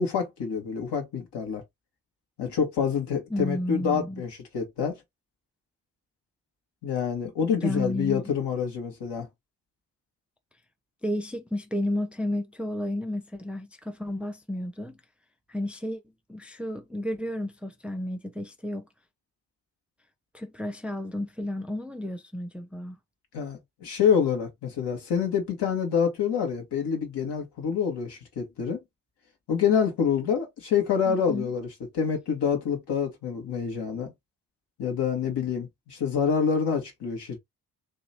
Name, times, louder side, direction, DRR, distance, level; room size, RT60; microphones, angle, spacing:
voice 1, 0.0-1.6 2.4-5.0 6.8-9.3 23.3-28.8 29.5-31.7 31.9-34.1 34.8-37.4, left 7 dB, 60° left, 1.8 m, -27 dB
voice 2, 3.3-4.2 7.6-8.3 11.0-15.0 15.5-16.0 16.3-18.9 20.3-23.0 31.1-31.5, left 1 dB, 5° right, 0.7 m, -32 dB
3.1 x 3.0 x 4.2 m
hypercardioid pair, 40°, 47 cm